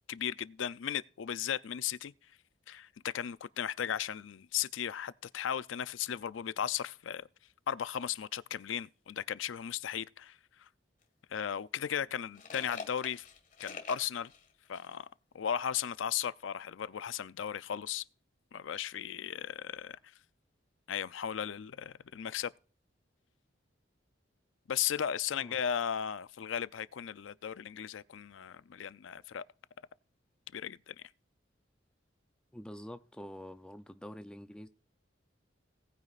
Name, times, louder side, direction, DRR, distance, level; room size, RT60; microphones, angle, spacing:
voice 1, 0.1-2.1 2.7-7.3 7.7-10.4 11.3-13.2 13.6-14.3 14.7-15.1 15.3-18.0 18.5-20.0 20.9-22.5 24.7-29.4 30.5-30.9, left 9 dB, 80° left, 0.4 m, -36 dB
sound 1, 11.0-11.1 11.8-15.0, left 4 dB, 45° left, 1.7 m, -46 dB
voice 2, 32.5-34.7, equal, 5° left, 0.5 m, -46 dB
18.5 x 9.3 x 2.4 m
head